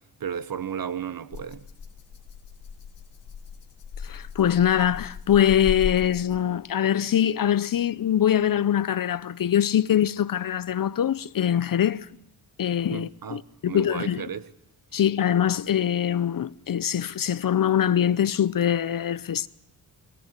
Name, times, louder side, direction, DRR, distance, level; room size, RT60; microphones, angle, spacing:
voice 1, 0.2-1.6 12.9-14.5, right 8 dB, 50° right, 1.1 m, -34 dB
Rattle (instrument), 1.3-6.6, left 6 dB, 70° left, 2.0 m, -37 dB
voice 2, 4.0-12.1 12.6-14.2 14.9-19.5, left 10 dB, 50° left, 0.7 m, -23 dB
21.5 x 18.0 x 8.2 m
cardioid pair, 90°, 44 cm